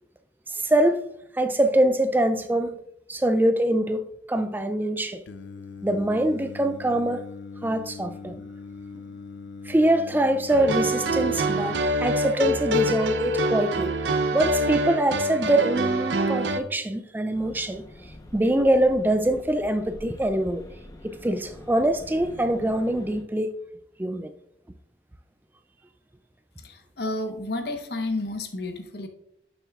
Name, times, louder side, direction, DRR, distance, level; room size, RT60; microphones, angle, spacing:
voice 1, 0.5-1.1 1.3-2.8 3.1-5.2 5.8-7.3 7.6-8.4 9.6-14.0 14.3-17.8 18.3-20.6 21.0-23.5 24.0-24.3, right 1 dB, 10° right, 0.3 m, -24 dB
Singing, 5.3-11.8, left 4 dB, 85° left, 0.5 m, -40 dB
sound 1, 10.5-16.6, right 1 dB, 80° right, 0.7 m, -25 dB
sound 2, 17.3-23.2, left 1 dB, 20° left, 0.9 m, -46 dB
voice 2, 26.6-29.1, left 2 dB, 60° left, 1.0 m, -31 dB
11.5 x 6.9 x 2.4 m
head